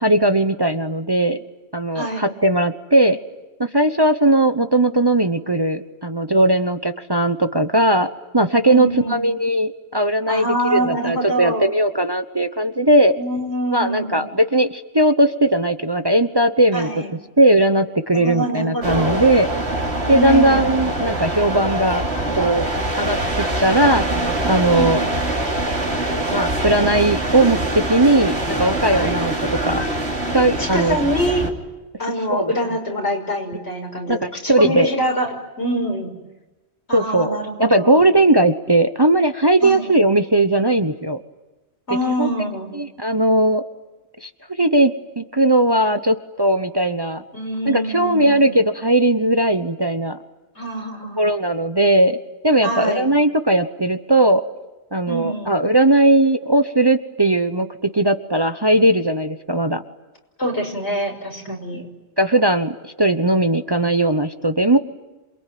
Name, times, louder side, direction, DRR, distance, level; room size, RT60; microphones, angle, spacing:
voice 1, 0.0-1.4 1.7-3.2 3.6-8.1 8.3-13.2 13.7-16.9 17.4-19.5 20.1-22.0 22.4-22.7 23.0-24.1 24.4-25.0 26.3-29.3 29.6-29.8 30.3-31.0 32.3-32.5 34.1-34.9 36.9-41.2 42.2-42.3 42.7-43.6 44.2-44.3 44.6-47.2 47.7-50.2 51.2-52.2 52.4-54.4 54.9-59.8 61.5-61.8 62.2-64.8, right 1 dB, 25° right, 8 dB, 1.0 m, -18 dB
voice 2, 1.9-2.3 8.6-9.2 10.3-11.7 13.2-14.3 16.7-17.1 18.1-19.2 20.0-20.8 24.7-25.0 28.9-29.3 30.6-31.5 32.0-34.2 34.4-35.3 35.6-36.1 36.9-38.1 39.6-39.9 41.9-42.7 47.3-48.6 50.6-51.3 52.6-53.1 55.1-55.6 60.4-61.9, equal, 75° left, 3 dB, 6.2 m, -25 dB
sound 1, 18.8-31.5, right 1 dB, 75° right, 3.2 m, -24 dB
27.5 x 22.5 x 9.4 m, 1.1 s
omnidirectional pair, 1.1 m